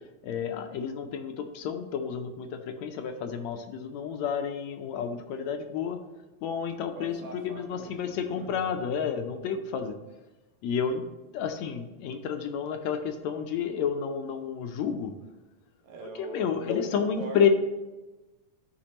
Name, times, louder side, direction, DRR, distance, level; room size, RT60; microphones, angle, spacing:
voice 1, 0.2-6.0 6.4-7.2 7.4-10.0 10.6-11.0 11.3-15.1 16.2-17.5, left 7 dB, 75° left, 6 dB, 1.8 m, -30 dB
voice 2, 7.0-8.7 15.8-17.5, right 3 dB, 75° right, 2 dB, 2.4 m, -42 dB
13.0 x 5.2 x 2.9 m, 1.1 s
omnidirectional pair, 3.4 m